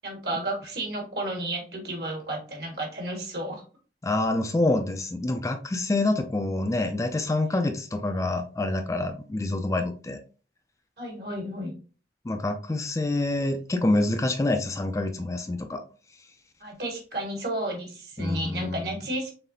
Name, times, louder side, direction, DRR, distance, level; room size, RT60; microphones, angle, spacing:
voice 1, 0.0-3.6 7.5-7.7 11.0-11.7 16.6-19.3, right 1 dB, 60° right, 1.5 m, -32 dB
voice 2, 4.0-10.2 12.3-15.8 18.2-19.0, left 2 dB, 20° left, 0.3 m, -27 dB
4.0 x 3.7 x 2.6 m
head